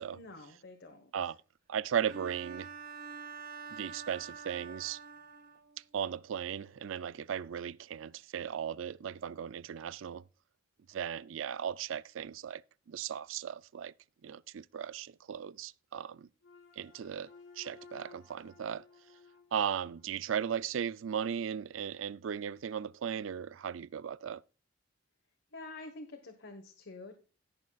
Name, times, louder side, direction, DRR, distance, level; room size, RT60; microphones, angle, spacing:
voice 1, 0.1-1.3 25.5-27.2, left 2 dB, 65° left, 1.3 m, -48 dB
voice 2, 1.7-2.7 3.7-5.0 5.9-10.2 10.9-12.6 12.9-13.9 14.2-16.3 16.8-17.3 17.6-18.8 19.5-24.4, right 8 dB, 75° right, 0.4 m, -36 dB
Bowed string instrument, 2.1-5.8, right 5 dB, 45° right, 1.4 m, -46 dB
sound 1, 16.4-20.7, left 4 dB, 85° left, 2.7 m, -57 dB
17.5 x 6.6 x 2.3 m
head